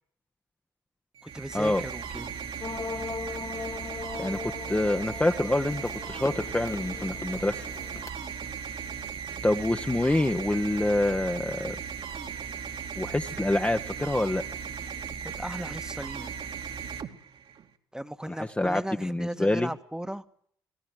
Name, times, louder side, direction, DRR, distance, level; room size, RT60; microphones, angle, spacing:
voice 1, 1.2-2.3 15.2-16.3 17.9-20.2, right 1 dB, 5° right, 10 dB, 1.7 m, -37 dB
sound 1, 1.2-17.7, right 7 dB, 55° right, 2.5 m, -37 dB
sound 2, 2.6-8.1, left 4 dB, 30° left, 1.4 m, -39 dB
voice 2, 4.2-7.6 9.4-11.8 13.0-14.4 18.3-19.7, left 1 dB, 10° left, 5 dB, 1.4 m, -26 dB
25.5 x 17.5 x 8.0 m, 0.64 s
hypercardioid pair, 45°, 11 cm